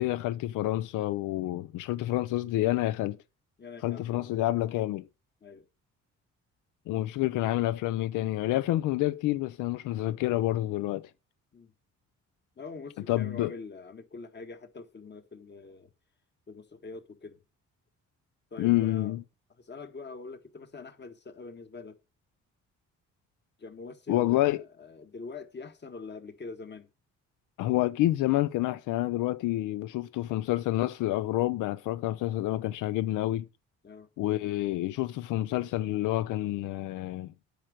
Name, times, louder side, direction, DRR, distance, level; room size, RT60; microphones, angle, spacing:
voice 1, 0.0-3.2 3.8-5.1 6.9-11.1 13.1-13.5 18.6-19.2 24.1-24.6 27.6-33.5 34.2-37.3, left 16 dB, 90° left, 0.5 m, -28 dB
voice 2, 3.6-4.3 5.4-5.7 11.5-11.7 12.6-15.9 16.5-17.4 18.5-19.1 19.6-22.0 23.6-26.9 33.8-34.1, left 4 dB, 35° left, 1.6 m, -44 dB
8.9 x 5.2 x 7.5 m
cardioid pair, 90°, 30 cm